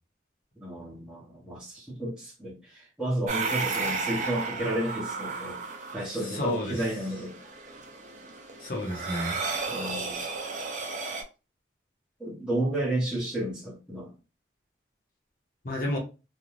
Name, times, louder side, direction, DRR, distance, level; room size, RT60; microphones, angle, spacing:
voice 1, 0.6-5.6 5.9-7.3 9.7-10.2 12.2-14.1, right 1 dB, 5° right, 0.9 m, -32 dB
sound 1, 3.3-11.2, right 4 dB, 45° right, 0.6 m, -34 dB
voice 2, 6.0-6.9 8.6-9.4 15.6-16.0, left 1 dB, 50° left, 0.9 m, -31 dB
2.5 x 2.3 x 3.1 m
head